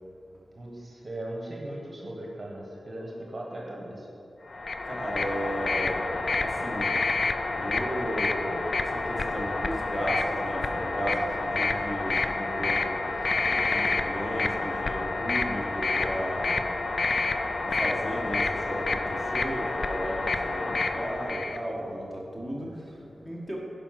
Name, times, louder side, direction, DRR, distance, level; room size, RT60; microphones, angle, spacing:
voice 1, 0.6-4.1 22.6-22.8, right 1 dB, 35° right, -2 dB, 1.3 m, -38 dB
sound 1, 4.5-21.6, left 3 dB, 50° left, 0.4 m, -29 dB
voice 2, 4.8-6.9 7.5-16.6 17.6-23.6, equal, 5° left, -4 dB, 1.8 m, -34 dB
10.0 x 5.3 x 5.9 m, 2.8 s
wide cardioid pair, 125°, 0 cm